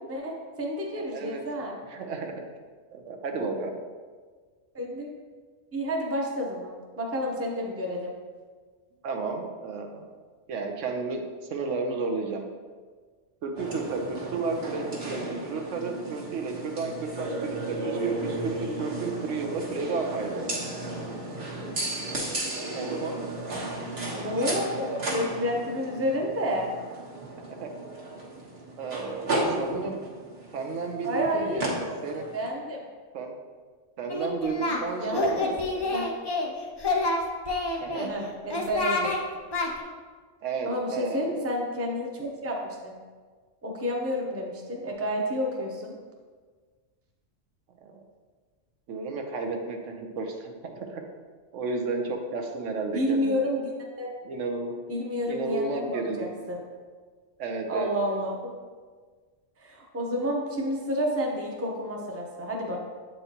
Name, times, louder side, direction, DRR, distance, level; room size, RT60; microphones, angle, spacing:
voice 1, 0.1-1.8 4.7-5.1 5.7-8.2 15.1-15.3 24.1-26.7 31.0-32.8 34.7-35.6 35.9-36.1 38.0-39.1 40.6-43.0 43.6-46.0 52.9-53.7 54.0-54.1 54.9-56.6 57.7-58.5 59.6-62.8, equal, 15° right, 0 dB, 0.6 m, -30 dB
voice 2, 0.9-2.4 2.9-3.8 9.0-10.1 10.5-11.2 11.5-12.4 13.4-20.4 22.8-23.2 27.5-27.7 28.8-30.0 30.5-31.8 32.0-32.3 33.1-33.3 34.0-36.0 37.8-38.1 40.4-41.3 47.8-48.0 48.9-51.0 51.5-53.5 54.2-54.7 55.3-56.3 57.4-57.9, right 4 dB, 80° right, 3 dB, 1.0 m, -32 dB
sound 1, 13.6-32.5, right 2 dB, 55° right, 1.4 m, -34 dB
Singing, 34.1-34.8 35.1-36.5 36.8-38.1 38.5-39.2 39.5-39.7, left 2 dB, 30° left, 0.5 m, -27 dB
7.9 x 4.4 x 2.8 m, 1.5 s
omnidirectional pair, 1.3 m